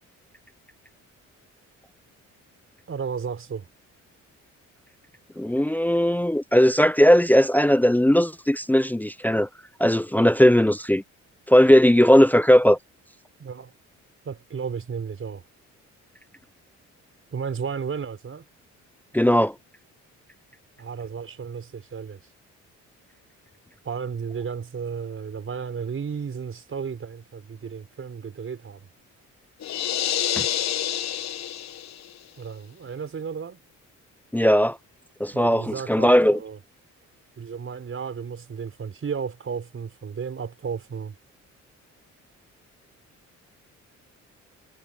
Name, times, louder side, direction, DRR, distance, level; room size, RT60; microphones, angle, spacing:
voice 1, 2.9-3.7 13.4-13.7 14.2-15.4 17.3-18.4 20.8-22.2 23.8-28.8 32.4-33.6 35.3-36.6 37.4-41.2, right 6 dB, 45° right, 6.0 m, -33 dB
voice 2, 5.4-9.5 9.8-11.0 11.5-12.8 19.1-19.5 30.4-30.5 34.3-34.8 35.2-36.4, equal, 5° left, 0.6 m, -18 dB
sound 1, 29.6-32.1, left 10 dB, 60° left, 1.3 m, -27 dB
cardioid pair, 90°, 30 cm